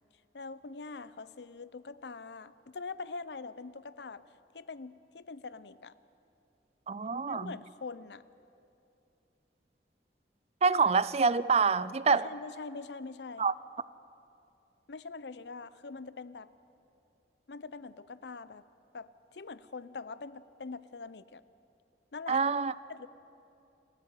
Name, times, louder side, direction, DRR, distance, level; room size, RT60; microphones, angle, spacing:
voice 1, 0.3-4.2 4.5-6.0 7.3-8.2 12.1-13.5 14.9-16.5 17.5-18.6 18.9-21.4 22.1-22.4 22.9-23.1, left 4 dB, 75° left, 0.7 m, -43 dB
voice 2, 6.9-7.5 10.6-12.3 13.4-13.5 22.3-22.7, right 5 dB, 35° right, 0.4 m, -26 dB
29.5 x 13.5 x 9.0 m
head